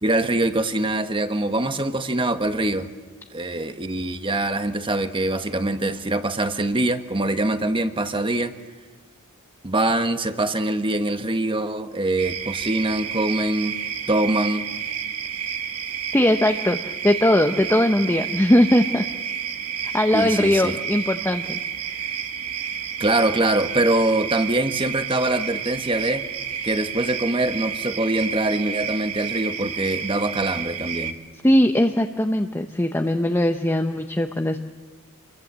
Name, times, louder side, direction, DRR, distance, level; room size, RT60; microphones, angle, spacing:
voice 1, 0.0-2.9 3.3-8.5 9.6-13.8 14.1-14.7 20.1-20.8 23.0-26.3 26.6-31.2, right 2 dB, 25° right, 8 dB, 1.3 m, -23 dB
sound 1, 12.2-31.1, right 8 dB, 75° right, 1.6 m, -30 dB
voice 2, 16.1-19.0 19.9-21.6 31.4-34.6, left 1 dB, 10° left, 5 dB, 0.9 m, -20 dB
28.0 x 23.0 x 7.5 m, 1.3 s
head